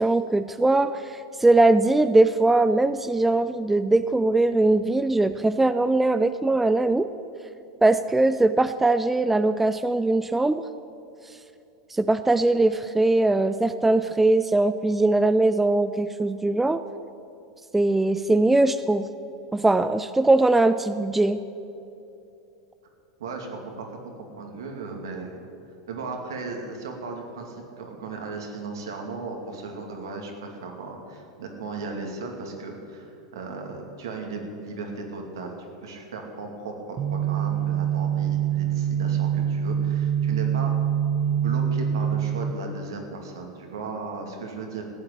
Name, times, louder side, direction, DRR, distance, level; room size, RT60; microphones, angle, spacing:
voice 1, 0.0-7.1 7.8-10.6 11.9-16.8 17.7-19.1 19.5-21.4, right 2 dB, 10° right, 12 dB, 0.4 m, -21 dB
voice 2, 23.2-25.4 25.9-40.7 41.3-44.8, right 4 dB, 70° right, 2 dB, 2.5 m, -36 dB
sound 1, 37.0-42.5, right 9 dB, 35° right, 0.9 m, -25 dB
15.5 x 8.8 x 8.6 m, 2.7 s
figure-of-eight pair, 90°, 2 cm